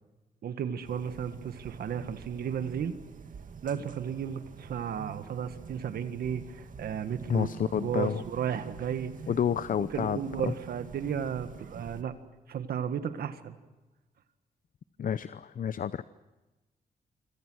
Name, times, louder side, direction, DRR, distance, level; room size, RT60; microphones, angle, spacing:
voice 1, 0.4-2.9 3.6-7.5 7.8-9.1 9.9-12.1 12.5-13.5, right 8 dB, 85° right, 10 dB, 1.8 m, -34 dB
sound 1, 0.8-12.0, right 6 dB, 60° right, 2.3 m, -46 dB
voice 2, 7.3-8.2 9.3-10.5 15.0-16.0, left 8 dB, 60° left, 15 dB, 0.7 m, -30 dB
26.5 x 26.0 x 6.4 m, 1.1 s
cardioid pair, 75°, 15 cm